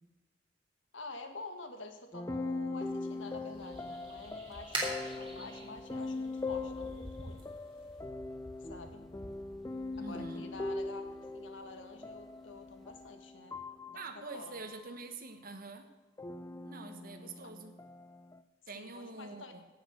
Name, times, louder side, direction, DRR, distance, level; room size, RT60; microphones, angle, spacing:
voice 1, 0.9-7.4 8.7-9.0 10.0-11.1 11.3-13.6 13.9-14.0 14.3-14.7 17.2-17.5 18.7-19.6, left 3 dB, 75° left, 6 dB, 1.5 m, -48 dB
sound 1, 2.1-14.9 16.2-18.4, left 3 dB, 15° left, 0.5 m, -41 dB
sound 2, 2.8-8.0, right 2 dB, 30° right, 3.1 m, -44 dB
sound 3, 3.5-13.1, equal, ahead, 1.3 m, -55 dB
voice 2, 10.0-10.5 13.9-15.9 16.6-17.8 18.7-19.6, right 3 dB, 50° right, 7 dB, 1.3 m, -45 dB
17.0 x 6.6 x 6.3 m, 1.2 s
head